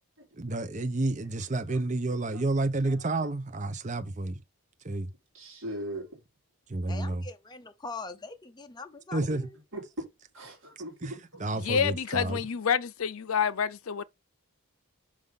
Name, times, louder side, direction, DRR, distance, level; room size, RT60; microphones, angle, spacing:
voice 1, 0.4-4.4 4.8-5.1 6.7-7.2 9.1-9.5 11.0-11.1 11.4-12.4, right 2 dB, 35° right, 0.8 m, -30 dB
voice 2, 2.1-2.4 2.8-3.0 5.3-6.2 9.2-9.3 9.7-10.1 10.3-11.7, right 1 dB, 60° right, 3.6 m, -40 dB
voice 3, 6.9-9.6, left 3 dB, 20° left, 0.7 m, -42 dB
voice 4, 11.6-14.0, left 7 dB, 70° left, 0.5 m, -28 dB
5.6 x 5.1 x 5.2 m
head